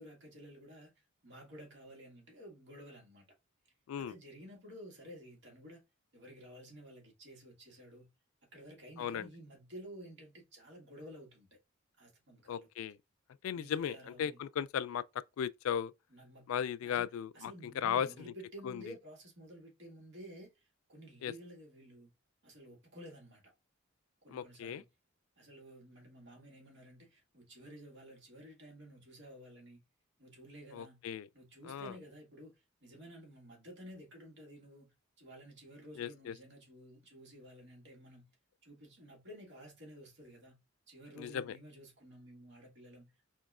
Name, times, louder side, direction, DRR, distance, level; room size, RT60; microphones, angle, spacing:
voice 1, 0.0-3.2 4.0-5.8 6.1-8.1 8.5-11.6 12.0-12.7 13.5-14.4 16.1-22.1 22.4-23.5 24.2-24.8 25.4-29.8 30.2-31.0 31.3-38.3 38.6-40.6 40.9-43.2, equal, 60° right, 1.6 m, -53 dB
voice 2, 9.0-9.3 12.5-13.0 13.4-15.9 16.5-18.1 18.6-18.8 21.2-21.3 24.3-24.8 30.7-31.3 31.6-31.9 36.0-36.3 41.2-41.6, left 8 dB, 85° left, 0.3 m, -36 dB
4.2 x 3.1 x 2.3 m
head